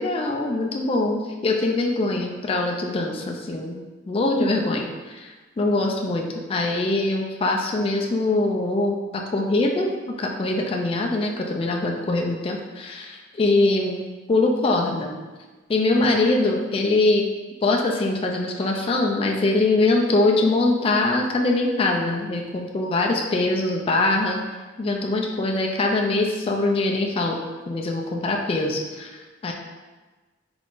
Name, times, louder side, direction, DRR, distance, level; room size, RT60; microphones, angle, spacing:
voice 1, 0.0-5.3 5.6-14.0 14.3-15.1 15.7-17.2 17.6-24.4 24.8-27.4 27.7-29.5, left 2 dB, 30° left, 1 dB, 0.3 m, -23 dB
3.8 x 3.6 x 2.5 m, 1.3 s
head